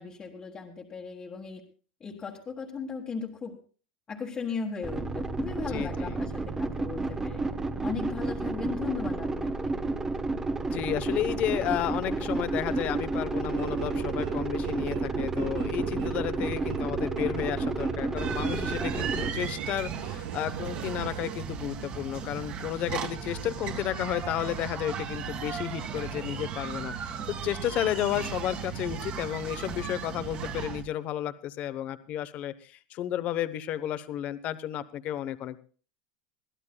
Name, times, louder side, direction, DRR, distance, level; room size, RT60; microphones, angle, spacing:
voice 1, 0.0-1.6 2.0-3.5 4.1-7.4 7.8-9.8 18.8-19.4, left 5 dB, 15° left, -1 dB, 1.6 m, -37 dB
sound 1, 4.8-19.3, right 3 dB, 10° right, 1.0 m, -31 dB
voice 2, 5.7-6.2 10.7-35.6, left 12 dB, 35° left, 13 dB, 0.9 m, -32 dB
sound 2, 13.5-21.4, right 14 dB, 65° right, 0.7 m, -40 dB
sound 3, 18.2-30.8, right 7 dB, 30° right, 1.8 m, -36 dB
22.5 x 15.5 x 2.3 m, 0.38 s
supercardioid pair, 160°, 4 cm